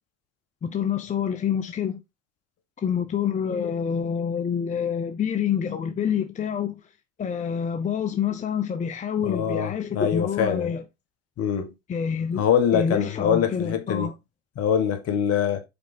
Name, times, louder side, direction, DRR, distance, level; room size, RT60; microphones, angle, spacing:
voice 1, 0.6-2.0 2.8-6.8 7.2-10.8 11.9-12.5 12.7-14.1, left 7 dB, 20° left, 0.7 m, -27 dB
voice 2, 9.3-10.7 11.4-11.7 12.4-14.1 14.6-15.6, left 8 dB, 45° left, 1.5 m, -24 dB
5.2 x 4.6 x 4.3 m
hypercardioid pair, 95°, 33 cm